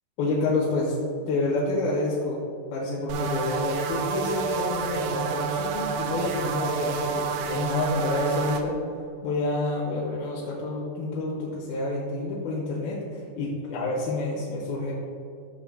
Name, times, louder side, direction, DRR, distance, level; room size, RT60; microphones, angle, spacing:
voice 1, 0.2-2.4 2.7-8.8 9.2-14.9, left 2 dB, 70° left, -5 dB, 2.7 m, -28 dB
sound 1, 3.1-8.6, right 5 dB, 80° right, 2.2 m, -29 dB
14.0 x 6.7 x 2.3 m, 2.6 s
omnidirectional pair, 4.9 m